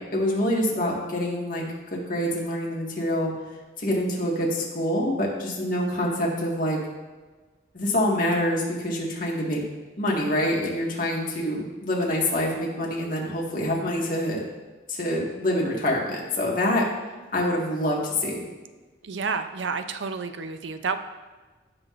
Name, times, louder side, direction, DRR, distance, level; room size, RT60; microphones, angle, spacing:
voice 1, 0.0-1.6 1.9-3.3 3.8-6.8 7.7-9.6 10.0-14.4 14.9-16.8 17.3-18.4, left 1 dB, 45° left, -3 dB, 1.7 m, -26 dB
voice 2, 19.0-21.0, right 5 dB, 75° right, 9 dB, 0.5 m, -30 dB
15.5 x 5.8 x 2.5 m, 1.3 s
head